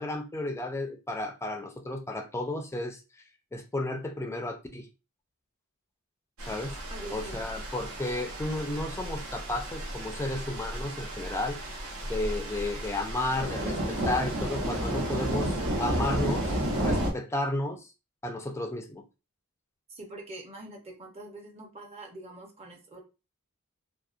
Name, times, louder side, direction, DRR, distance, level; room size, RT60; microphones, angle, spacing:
voice 1, 0.0-3.0 3.5-4.9 6.5-6.8 7.1-11.6 12.0-17.9 18.2-19.0, left 1 dB, 10° left, 0.3 m, -33 dB
sound 1, 6.4-17.1, right 1 dB, 80° right, 0.8 m, -32 dB
voice 2, 6.9-7.4 19.9-23.0, right 2 dB, 30° right, 0.6 m, -44 dB
2.6 x 2.0 x 2.4 m
head